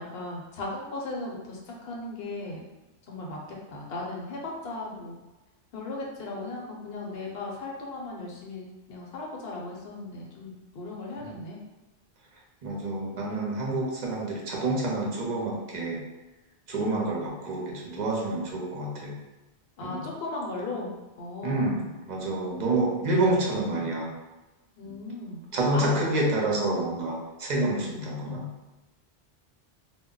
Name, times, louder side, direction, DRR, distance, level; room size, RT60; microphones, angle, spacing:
voice 1, 0.0-2.6 3.1-3.4 3.7-5.2 5.7-11.6 19.8-20.9 21.2-21.6 24.7-25.4 25.7-26.0, left 2 dB, 65° left, -2 dB, 0.8 m, -37 dB
voice 2, 12.6-16.0 16.7-19.1 19.8-20.1 21.4-24.1 24.8-24.9 25.5-28.5, right 2 dB, 50° right, -2 dB, 0.6 m, -28 dB
2.2 x 2.0 x 3.7 m, 1.1 s
omnidirectional pair, 1.2 m